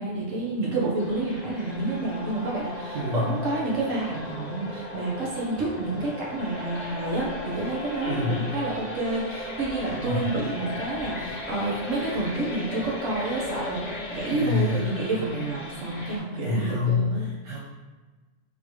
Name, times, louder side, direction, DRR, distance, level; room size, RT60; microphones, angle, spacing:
voice 1, 0.0-13.8 14.1-17.3, right 2 dB, 85° right, -4 dB, 1.5 m, -29 dB
sound 1, 1.0-16.2, left 1 dB, 45° left, 0.6 m, -37 dB
voice 2, 2.9-3.3 8.1-8.5 10.0-10.4 14.3-14.9 16.4-17.6, left 3 dB, 65° right, -5 dB, 1.1 m, -27 dB
3.9 x 3.4 x 3.2 m, 1.3 s
omnidirectional pair, 1.3 m